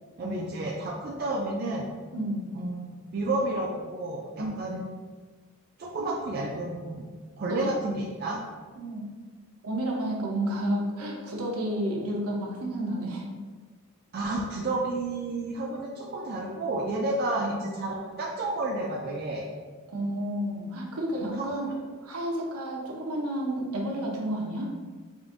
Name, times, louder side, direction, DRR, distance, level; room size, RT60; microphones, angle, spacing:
voice 1, 0.2-1.9 2.5-4.9 5.8-7.1 7.4-8.4 14.1-19.5 21.2-21.7, right 2 dB, 45° right, -2 dB, 0.4 m, -31 dB
voice 2, 2.1-2.5 4.4-4.5 6.0-6.1 7.5-7.7 8.8-9.0 9.6-13.3 17.4-17.6 19.9-21.7 22.0-24.7, right 1 dB, 85° right, -1 dB, 0.8 m, -31 dB
5.1 x 2.6 x 2.5 m, 1.4 s
head